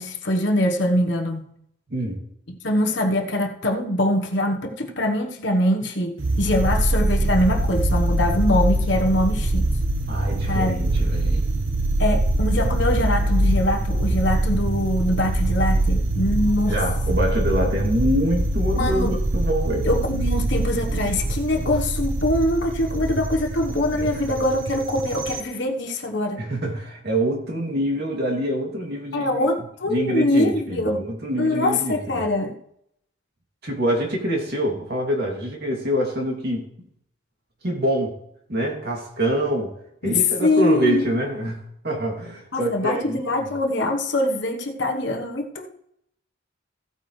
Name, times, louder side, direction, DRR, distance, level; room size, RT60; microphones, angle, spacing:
voice 1, 0.0-1.5 2.5-9.7 10.5-10.8 12.0-16.8 18.7-19.1 19.8-26.4 29.1-31.0 31.4-32.5 40.0-41.0 42.5-45.7, left 1 dB, 60° left, 4 dB, 1.2 m, -23 dB
voice 2, 1.9-2.2 10.1-11.5 16.7-19.9 22.9-23.0 23.9-24.1 26.4-29.3 29.9-32.2 33.6-36.6 37.6-38.1 38.5-39.7 40.0-43.5, right 1 dB, 50° right, 0 dB, 2.6 m, -25 dB
sound 1, 6.2-25.4, right 1 dB, 75° right, 1.1 m, -23 dB
15.5 x 8.5 x 3.2 m, 0.74 s
head